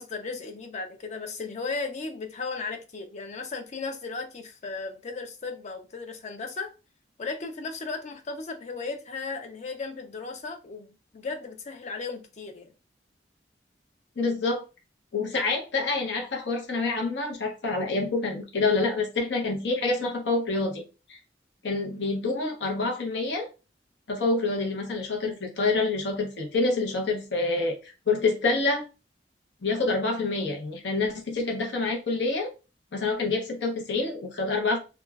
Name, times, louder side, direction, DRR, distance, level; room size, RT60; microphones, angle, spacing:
voice 1, 0.0-6.7 7.2-12.7, left 4 dB, 40° left, 0.5 m, -36 dB
voice 2, 14.2-14.6 15.1-20.8 21.1-21.2 21.6-23.5 24.1-28.8 29.6-32.5 32.9-34.8, left 3 dB, 80° left, 0.7 m, -27 dB
2.9 x 2.2 x 2.3 m
head